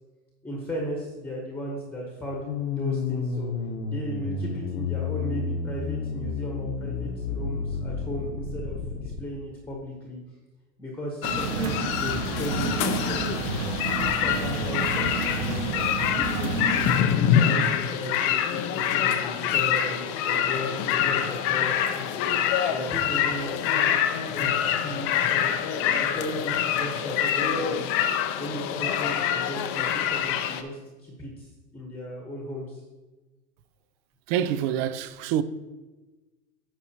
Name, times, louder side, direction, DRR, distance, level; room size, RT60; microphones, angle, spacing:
voice 1, 0.4-3.5 3.9-10.2 10.8-13.3 14.0-15.7 16.1-25.5 25.8-27.9 28.4-32.8, equal, 5° left, 1.0 m, -36 dB
sound 1, 2.5-9.2, left 5 dB, 65° left, 0.9 m, -31 dB
sound 2, 11.2-30.6, left 9 dB, 30° left, 0.4 m, -26 dB
sound 3, 11.2-17.0, right 3 dB, 75° right, 1.3 m, -30 dB
voice 2, 34.3-35.4, right 10 dB, 45° right, 0.4 m, -26 dB
9.8 x 6.0 x 2.8 m
supercardioid pair, 130°, 47 cm